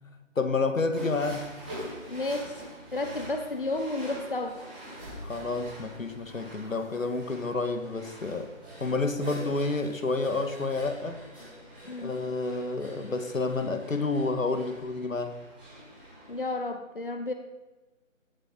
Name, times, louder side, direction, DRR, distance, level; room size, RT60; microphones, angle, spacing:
voice 1, 0.3-1.5 5.2-8.5 8.8-11.2 12.0-15.4, left 3 dB, 80° left, 8 dB, 1.8 m, -29 dB
sound 1, 0.9-16.5, equal, 5° right, 2.1 m, -45 dB
voice 2, 2.1-2.6 2.9-4.6 11.9-12.1 16.3-17.3, left 2 dB, 40° left, 6 dB, 1.0 m, -32 dB
17.0 x 8.0 x 4.4 m, 1.2 s
figure-of-eight pair, 180°, 39 cm